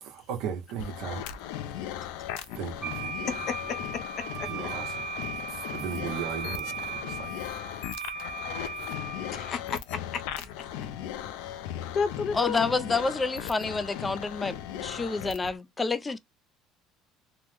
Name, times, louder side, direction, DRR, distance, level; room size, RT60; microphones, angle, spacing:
voice 1, 0.0-1.2 2.6-3.3 4.5-5.1 5.7-7.3 8.5-8.6, right 6 dB, 70° right, 0.9 m, -36 dB
sound 1, 0.8-15.6, left 11 dB, 85° left, 0.4 m, -38 dB
Wind instrument woodwind instrument, 2.8-9.6, right 3 dB, 10° right, 1.1 m, -37 dB
voice 2, 3.3-4.7 9.2-10.7 11.4-11.6 11.9-13.0, left 6 dB, 45° left, 0.7 m, -34 dB
voice 3, 12.3-16.2, left 3 dB, 15° left, 0.3 m, -29 dB
3.0 x 2.0 x 3.2 m
cardioid pair, 140°, 0 cm